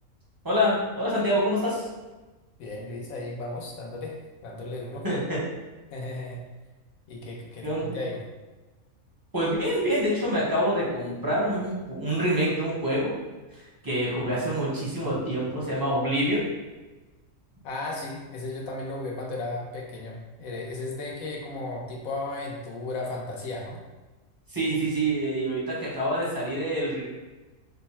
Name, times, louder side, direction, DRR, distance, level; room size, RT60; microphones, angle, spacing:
voice 1, 0.4-1.8 5.0-5.4 7.6-8.0 9.3-13.1 13.5-16.5 24.5-27.0, equal, 25° right, -6 dB, 0.5 m, -26 dB
voice 2, 2.6-4.2 4.4-5.0 5.9-6.4 7.1-8.2 17.6-23.8, left 2 dB, 75° left, -1 dB, 1.1 m, -35 dB
3.3 x 2.0 x 4.1 m, 1.2 s
omnidirectional pair, 1.5 m